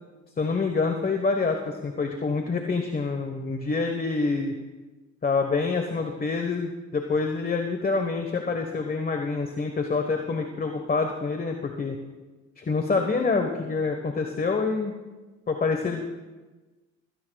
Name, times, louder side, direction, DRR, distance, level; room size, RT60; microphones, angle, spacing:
voice 1, 0.4-4.5 5.2-12.0 12.6-14.9 15.5-16.1, left 4 dB, 30° left, 4 dB, 1.3 m, -26 dB
22.0 x 16.5 x 2.4 m, 1.2 s
cardioid pair, 90°, 30 cm